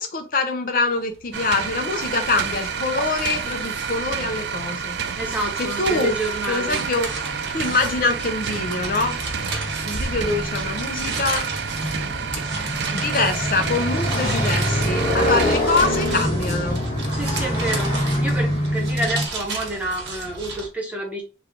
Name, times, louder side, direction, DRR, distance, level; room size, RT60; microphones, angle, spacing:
voice 1, 0.0-4.9 5.8-6.1 6.5-7.1 7.5-9.2 9.8-11.4 12.3-12.4 12.9-16.8, left 3 dB, 50° left, 6 dB, 0.5 m, -24 dB
sound 1, 1.0-20.7, right 3 dB, 85° right, 1.1 m, -34 dB
sound 2, 1.3-15.6, right 7 dB, 70° right, 0.3 m, -29 dB
voice 2, 5.1-6.8 17.1-21.2, right 1 dB, 10° right, -1 dB, 0.9 m, -29 dB
Motorcycle, 7.0-19.3, equal, 30° left, 1.4 m, -26 dB
3.3 x 2.3 x 3.5 m, 0.32 s
head